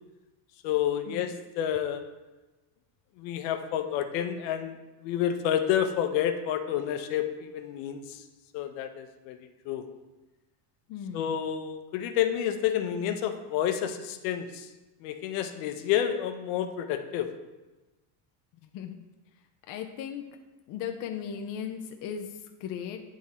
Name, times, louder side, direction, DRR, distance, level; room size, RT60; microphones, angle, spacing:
voice 1, 0.6-2.0 3.2-4.8 5.0-8.2 8.5-9.4 9.6-9.9 11.1-14.7 15.0-17.3, left 10 dB, 70° left, 7 dB, 0.8 m, -29 dB
voice 2, 10.9-11.4 18.6-19.0 19.7-20.3 20.7-23.0, left 8 dB, 45° left, 4 dB, 0.5 m, -37 dB
9.5 x 3.7 x 4.2 m, 1.1 s
cardioid pair, 165°, 48 cm